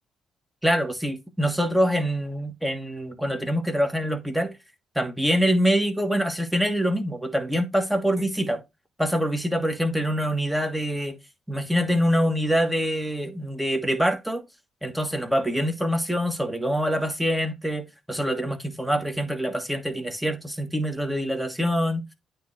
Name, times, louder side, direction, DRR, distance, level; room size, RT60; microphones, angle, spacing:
voice 1, 0.6-4.5 4.9-8.6 9.0-11.2 11.5-14.4 14.8-22.0, equal, 5° right, 1.5 m, -25 dB
9.1 x 3.3 x 4.9 m
cardioid pair, 90°, 0 cm